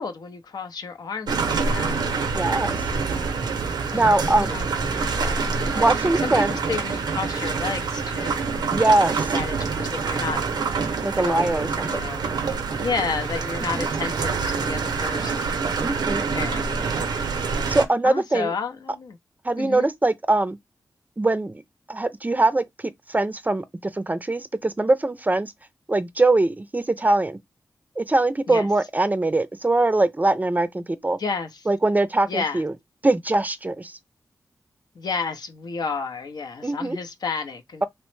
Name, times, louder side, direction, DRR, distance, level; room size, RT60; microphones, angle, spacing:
voice 1, 0.0-2.0 3.9-5.9 6.2-8.5 9.3-10.5 11.1-12.2 12.8-15.6 16.3-17.0 18.0-19.2 19.6-19.9 28.5-28.7 31.2-31.7 32.2-32.6 34.9-37.8, left 5 dB, 75° left, 0.5 m, -32 dB
sound 1, 1.3-17.9, right 4 dB, 90° right, 0.5 m, -26 dB
voice 2, 2.3-2.8 3.9-4.5 5.8-6.6 8.7-9.3 11.0-12.1 13.7-13.8 15.8-16.2 17.7-18.5 19.4-20.6 21.2-21.6 21.9-22.6 23.1-25.5 25.9-27.4 28.0-31.2 31.7-32.7 33.0-34.0 36.6-37.0, right 2 dB, 25° right, 0.4 m, -22 dB
2.9 x 2.1 x 3.1 m
cardioid pair, 55°, 7 cm